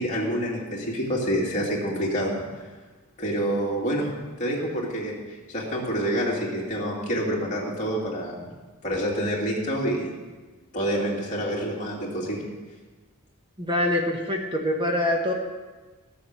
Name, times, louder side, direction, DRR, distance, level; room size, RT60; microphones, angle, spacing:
voice 1, 0.0-2.6 3.2-8.5 8.8-10.1 10.7-12.5, equal, 35° left, -4 dB, 2.8 m, -27 dB
voice 2, 13.6-15.3, left 1 dB, 20° right, 1 dB, 1.1 m, -24 dB
14.0 x 7.6 x 6.7 m, 1.3 s
head